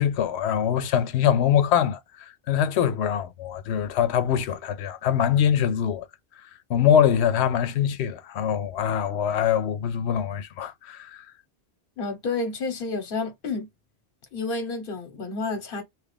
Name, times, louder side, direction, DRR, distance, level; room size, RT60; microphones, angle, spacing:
voice 1, 0.0-6.1 6.7-11.3, left 9 dB, 85° left, 0.8 m, -23 dB
voice 2, 12.0-13.7 14.3-15.8, left 3 dB, 60° left, 1.1 m, -30 dB
3.0 x 2.4 x 3.2 m
omnidirectional pair, 1.1 m